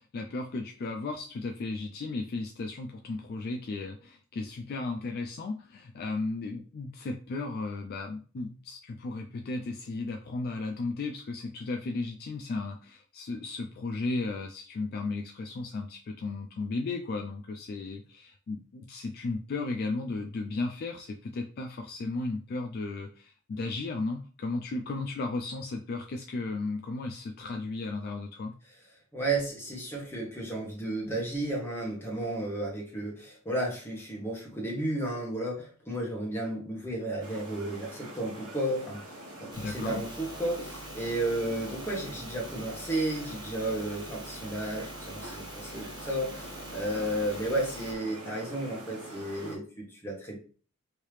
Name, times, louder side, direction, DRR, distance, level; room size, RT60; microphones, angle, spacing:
voice 1, 0.0-28.5 39.6-40.0, left 3 dB, 45° left, 3 dB, 0.3 m, -35 dB
voice 2, 29.1-39.0 39.4-50.4, right 1 dB, 10° left, -2 dB, 1.0 m, -33 dB
sound 1, 37.2-49.6, right 1 dB, 70° right, 1.0 m, -44 dB
sound 2, 39.5-47.9, right 1 dB, 20° right, 0.9 m, -46 dB
3.2 x 2.7 x 3.2 m, 0.40 s
head